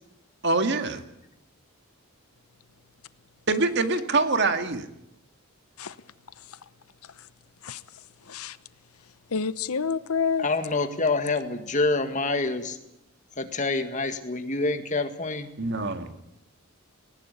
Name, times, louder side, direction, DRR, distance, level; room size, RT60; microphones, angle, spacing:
voice 1, 0.4-1.0 3.5-4.9 15.6-16.2, right 3 dB, 50° right, 8 dB, 2.0 m, -25 dB
voice 2, 9.3-10.5, left 5 dB, 80° left, 15 dB, 0.9 m, -28 dB
voice 3, 10.4-12.8 13.4-15.5, left 3 dB, 35° left, 8 dB, 1.9 m, -26 dB
19.0 x 19.0 x 9.7 m, 0.81 s
head